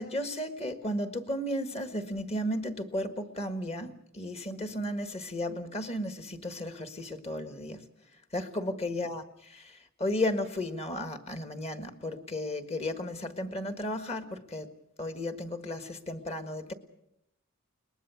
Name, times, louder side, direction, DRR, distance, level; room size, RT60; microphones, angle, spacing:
voice 1, 0.0-7.9 8.3-14.7 15.0-16.7, left 1 dB, 30° left, 8 dB, 1.5 m, -34 dB
22.0 x 20.0 x 7.0 m, 0.78 s
head